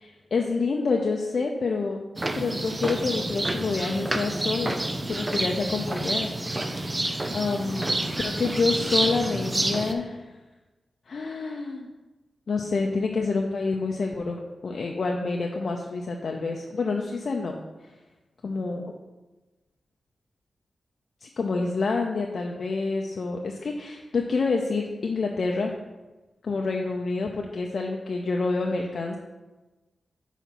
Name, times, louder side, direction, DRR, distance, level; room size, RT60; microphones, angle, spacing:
voice 1, 0.3-2.0 2.4-4.8 5.1-6.9 7.3-7.9 8.2-10.2 11.1-11.9 12.5-17.6 18.4-19.0 21.2-25.7 26.4-29.2, left 4 dB, 65° left, 1 dB, 0.6 m, -28 dB
sound 1, 2.2-9.9, right 1 dB, 25° right, 0.7 m, -28 dB
5.9 x 4.1 x 5.8 m, 1.1 s
cardioid pair, 55°, 0 cm